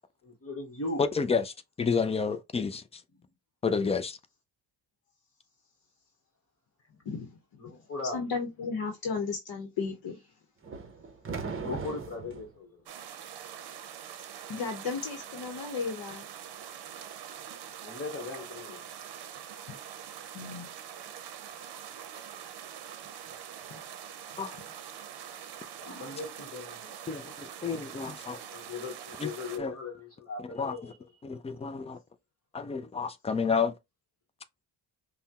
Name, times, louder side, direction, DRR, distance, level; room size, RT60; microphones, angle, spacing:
voice 1, 0.2-1.0 7.6-8.2 11.6-12.8 17.8-18.8 25.8-27.0 28.5-30.9, left 3 dB, 35° left, 1.1 m, -38 dB
voice 2, 1.0-3.0 3.6-4.2 24.4-24.6 27.1-28.4 29.2-29.3 29.6-29.8 30.4-30.9 31.2-32.0 32.5-33.7, left 5 dB, 15° left, 0.3 m, -30 dB
voice 3, 7.0-7.4 8.1-10.2 14.5-16.3 19.7-19.8 20.3-20.7 23.7-23.8, left 5 dB, 60° left, 0.9 m, -34 dB
sound 1, 10.6-12.5, right 5 dB, 30° right, 0.8 m, -38 dB
sound 2, 12.9-29.6, right 9 dB, 65° right, 0.7 m, -44 dB
5.5 x 2.2 x 2.8 m
cardioid pair, 135°, 43 cm